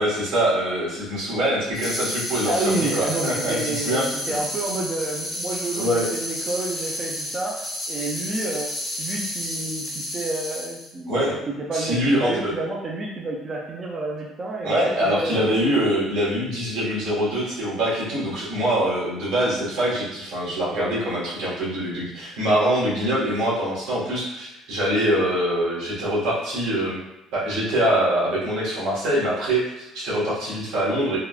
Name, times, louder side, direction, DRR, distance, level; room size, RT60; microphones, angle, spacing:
voice 1, 0.0-4.1 5.7-6.1 11.1-11.3 11.7-12.5 14.6-27.0 27.3-31.2, right 1 dB, 85° right, -6 dB, 1.3 m, -24 dB
sound 1, 1.7-10.9, left 1 dB, 15° left, 0.6 m, -31 dB
voice 2, 2.4-8.7 9.0-15.5, right 2 dB, 25° right, -2 dB, 0.4 m, -29 dB
3.4 x 2.2 x 2.3 m, 0.97 s
cardioid pair, 155°, 0 cm